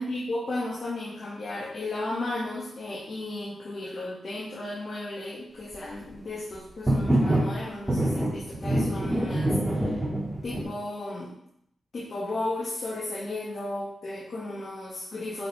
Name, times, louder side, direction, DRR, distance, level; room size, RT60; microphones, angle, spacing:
voice 1, 0.0-10.0 10.4-11.3 11.9-15.5, left 2 dB, 55° left, -7 dB, 2.4 m, -34 dB
sound 1, 6.9-7.5 7.9-10.6, right 1 dB, 10° right, 3.1 m, -25 dB
9.2 x 5.2 x 3.7 m, 0.73 s
cardioid pair, 65°, 0 cm